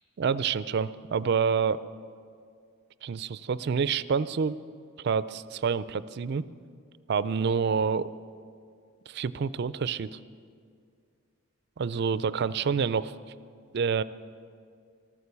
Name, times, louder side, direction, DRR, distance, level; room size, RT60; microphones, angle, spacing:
voice 1, 0.2-1.8 3.0-4.6 5.0-6.5 7.1-8.1 9.1-10.1 11.8-13.1 13.7-14.0, right 6 dB, 50° right, 16 dB, 0.4 m, -27 dB
14.0 x 13.5 x 6.9 m, 2.2 s
head